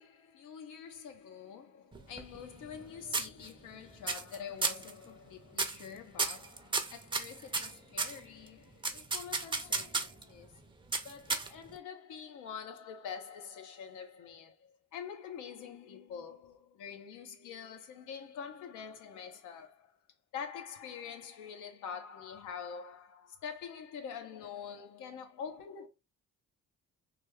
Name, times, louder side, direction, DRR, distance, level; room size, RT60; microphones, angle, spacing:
voice 1, 0.0-10.7 11.0-20.0 20.3-25.9, left 7 dB, 90° left, 0.7 m, -46 dB
sound 1, 1.9-2.8 3.1-3.7 4.1-4.4 4.6-4.9 5.5-5.9 6.2-8.2 8.8-10.2 10.9-11.8, right 3 dB, 15° right, 0.5 m, -33 dB
3.3 x 2.2 x 3.1 m
cardioid pair, 90°, 30 cm